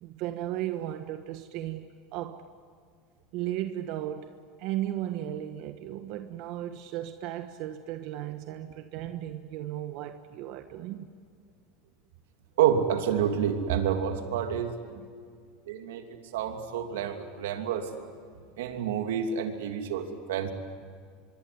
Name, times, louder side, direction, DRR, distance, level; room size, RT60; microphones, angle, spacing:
voice 1, 0.0-2.5 3.3-11.1 13.7-13.8 14.9-15.1, right 13 dB, 60° right, 1.3 m, -35 dB
voice 2, 12.6-14.7 15.7-16.0 16.3-17.9 18.6-20.5, right 8 dB, 85° right, 3.0 m, -28 dB
24.5 x 24.0 x 9.6 m
supercardioid pair, 115°, 0 cm